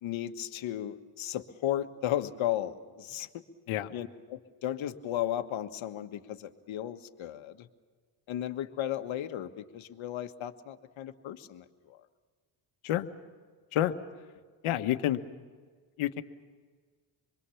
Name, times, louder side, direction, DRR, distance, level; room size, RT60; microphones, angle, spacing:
voice 1, 0.0-3.3 3.7-7.7 8.3-12.0, left 12 dB, 70° left, 7 dB, 1.6 m, -35 dB
voice 2, 14.6-15.2 16.0-16.2, left 13 dB, 90° left, 8 dB, 1.4 m, -28 dB
26.5 x 22.0 x 7.2 m, 1.5 s
cardioid pair, 95°, 48 cm